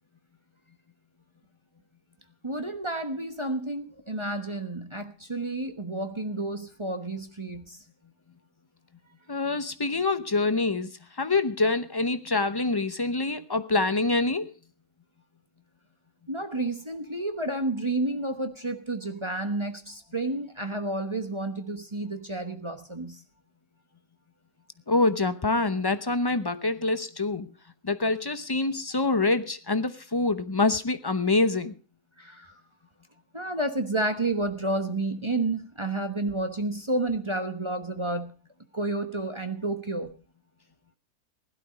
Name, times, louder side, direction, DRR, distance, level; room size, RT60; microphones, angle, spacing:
voice 1, 2.4-7.8 16.3-23.2 32.2-32.5 33.3-38.3 38.7-40.1, right 2 dB, 20° right, 1.0 m, -30 dB
voice 2, 9.3-10.9 11.2-14.5 24.9-27.5 27.8-31.8, left 3 dB, 25° left, 0.5 m, -25 dB
16.5 x 12.0 x 5.1 m
omnidirectional pair, 1.6 m